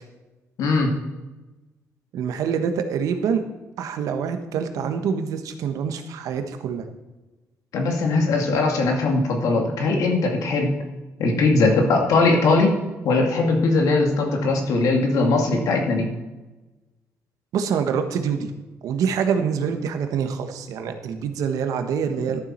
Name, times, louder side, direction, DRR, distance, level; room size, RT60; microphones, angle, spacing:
voice 1, 0.6-0.9 7.7-10.7 11.2-12.7 13.0-16.1, left 3 dB, 75° left, 2 dB, 2.4 m, -20 dB
voice 2, 2.1-3.4 3.8-6.8 17.5-18.5 18.8-22.4, right 7 dB, 80° right, 7 dB, 1.2 m, -25 dB
12.5 x 7.3 x 4.4 m, 1.1 s
cardioid pair, 95°, 6 cm